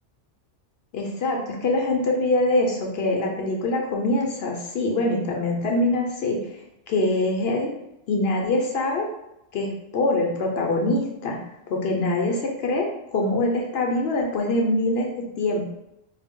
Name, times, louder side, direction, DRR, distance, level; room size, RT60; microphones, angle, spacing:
voice 1, 0.9-6.5 6.9-7.7 8.1-9.1 9.5-11.4 11.7-15.6, left 2 dB, 65° left, 0 dB, 0.7 m, -24 dB
3.6 x 2.0 x 3.5 m, 0.87 s
omnidirectional pair, 1.3 m